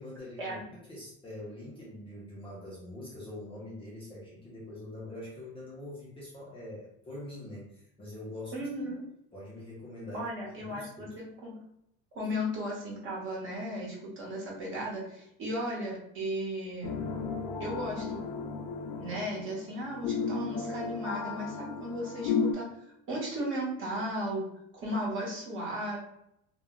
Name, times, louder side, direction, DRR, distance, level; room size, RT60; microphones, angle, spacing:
voice 1, 0.0-8.9 9.3-10.3 10.6-11.2, left 1 dB, 15° left, -6 dB, 0.4 m, -44 dB
voice 2, 8.5-9.0 10.1-11.5 12.1-17.0 17.6-18.2 19.0-22.7 23.1-24.5 24.8-26.0, equal, 40° right, -3 dB, 1.0 m, -35 dB
sound 1, 16.8-22.5, left 5 dB, 85° left, 0.5 m, -34 dB
2.3 x 2.1 x 3.5 m, 0.77 s
cardioid pair, 160°, 32 cm